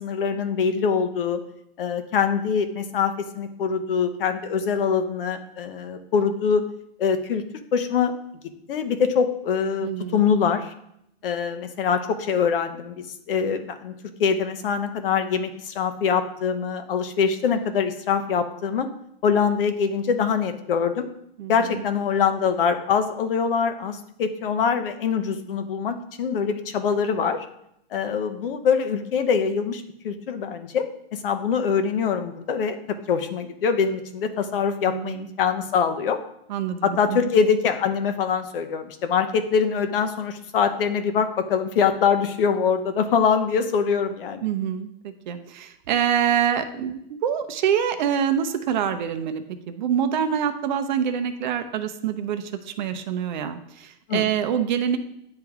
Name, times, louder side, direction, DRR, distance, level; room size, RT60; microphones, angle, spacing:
voice 1, 0.0-1.4 1.8-6.6 7.0-7.4 7.7-8.1 8.7-10.7 11.2-13.9 14.2-18.9 19.2-21.1 21.5-27.5 27.9-36.2 36.8-44.5 54.1-54.3, left 6 dB, 65° left, 8 dB, 0.8 m, -24 dB
voice 2, 9.8-10.3 21.4-21.8 34.9-35.3 36.5-37.2 44.4-55.0, right 8 dB, 50° right, 9 dB, 0.6 m, -26 dB
9.7 x 3.3 x 3.5 m, 0.75 s
hypercardioid pair, 155°, 31 cm